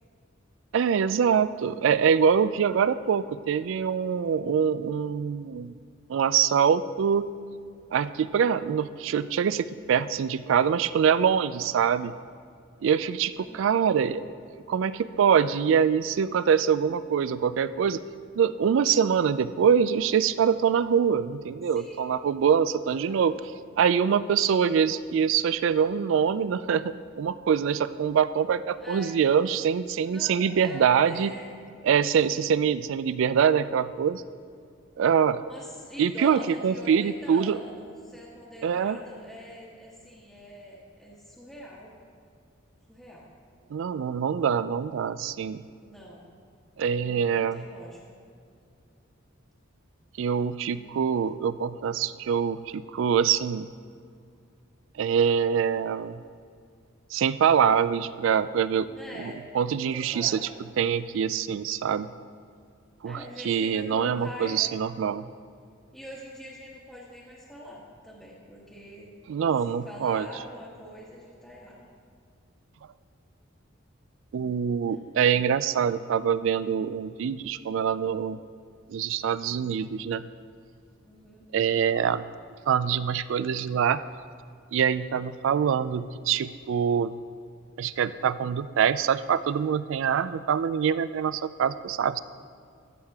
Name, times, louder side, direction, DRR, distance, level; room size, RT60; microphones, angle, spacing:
voice 1, 0.7-5.7 6.1-7.3 7.9-12.1 12.8-14.2 14.7-18.0 18.4-23.3 23.8-31.3 31.8-34.2 35.0-35.4 36.0-37.6 38.6-39.0 43.7-45.6 46.8-47.6 50.2-53.7 55.0-56.2 57.1-58.9 59.2-60.4 60.8-62.1 63.0-65.3 69.3-70.3 74.3-78.4 78.9-80.2 81.5-82.2 82.7-84.0 84.7-87.1 87.8-92.2, right 7 dB, 65° right, 15 dB, 0.3 m, -24 dB
voice 2, 13.4-13.7 21.7-22.0 22.9-23.4 28.8-29.2 30.0-31.5 31.9-32.7 35.4-41.9 42.9-43.3 45.8-46.2 47.3-48.2 50.7-50.9 58.9-60.5 63.0-64.8 65.9-69.1 69.7-71.8 74.9-75.0 81.0-81.4, equal, ahead, -7 dB, 1.1 m, -44 dB
14.5 x 6.5 x 3.5 m, 2.3 s
head